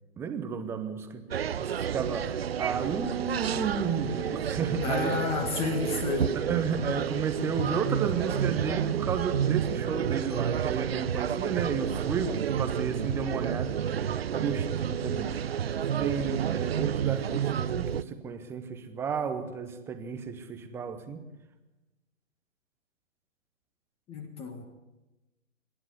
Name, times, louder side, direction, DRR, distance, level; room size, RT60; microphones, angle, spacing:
voice 1, 0.2-5.2 6.5-15.7 16.0-21.2, right 6 dB, 5° right, 8 dB, 0.8 m, -33 dB
sound 1, 1.3-18.0, right 9 dB, 50° right, 0.7 m, -30 dB
voice 2, 4.8-6.4 24.1-24.6, left 4 dB, 15° left, 8 dB, 1.5 m, -31 dB
25.5 x 11.0 x 9.8 m, 1.1 s
figure-of-eight pair, 135°, 39 cm